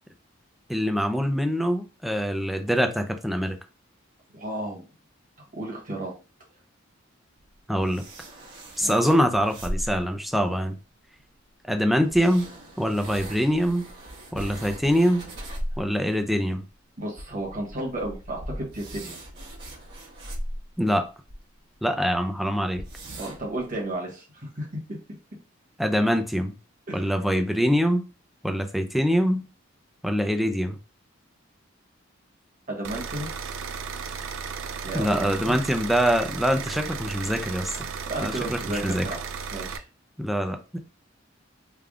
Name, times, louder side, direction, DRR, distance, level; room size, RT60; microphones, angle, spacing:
voice 1, 0.7-3.6 7.7-8.0 8.8-10.8 11.7-12.5 12.8-13.8 14.3-15.2 15.8-16.6 20.8-21.1 21.8-22.8 25.8-26.5 26.9-28.0 28.4-29.4 30.0-30.8 34.9-37.7 38.2-39.0 40.2-40.8, equal, ahead, 0.4 m, -24 dB
voice 2, 4.3-4.9 5.5-6.1 8.8-9.0 17.0-19.2 23.2-24.7 26.9-27.1 32.7-33.3 34.8-35.5 37.7-39.2 39.5-39.8, right 1 dB, 45° right, 1.4 m, -33 dB
sound 1, 7.4-10.1 11.2-11.3 12.0-15.9 16.2-16.3 16.6-16.7 17.1-21.4 21.8-21.9 22.1-22.2 22.7-23.6, equal, 65° right, 1.4 m, -38 dB
sound 2, 32.8-39.8, right 6 dB, 85° right, 0.4 m, -35 dB
3.4 x 2.3 x 3.6 m
head